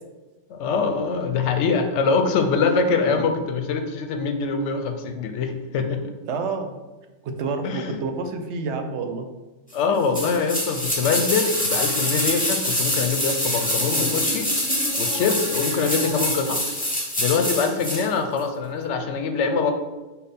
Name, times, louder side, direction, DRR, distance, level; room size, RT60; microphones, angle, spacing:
voice 1, 0.5-6.0 7.6-8.0 9.7-14.5 15.0-16.6 17.2-19.7, left 5 dB, 80° left, 6 dB, 0.9 m, -23 dB
voice 2, 6.3-6.8 7.2-9.3, right 4 dB, 75° right, 6 dB, 0.9 m, -29 dB
sound 1, 10.1-18.1 18.4-18.5, left 1 dB, 10° left, 0.7 m, -25 dB
sound 2, 10.6-16.8, right 1 dB, 40° right, 0.9 m, -39 dB
5.3 x 2.3 x 4.1 m, 1.2 s
omnidirectional pair, 1.2 m